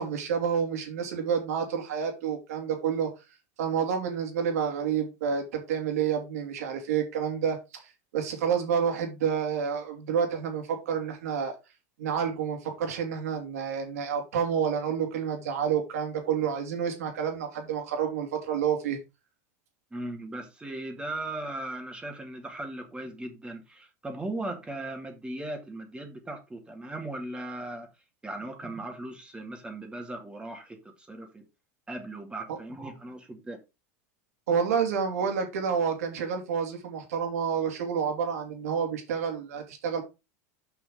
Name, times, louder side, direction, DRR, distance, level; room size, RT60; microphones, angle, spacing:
voice 1, 0.0-3.1 3.6-7.8 8.1-11.5 12.0-19.0 32.5-32.6 34.5-40.0, right 7 dB, 80° right, 2.9 m, -29 dB
voice 2, 19.9-27.9 28.2-31.4 31.9-33.6, right 2 dB, 10° right, 2.3 m, -38 dB
6.5 x 5.8 x 4.9 m
supercardioid pair, 105°, 8 cm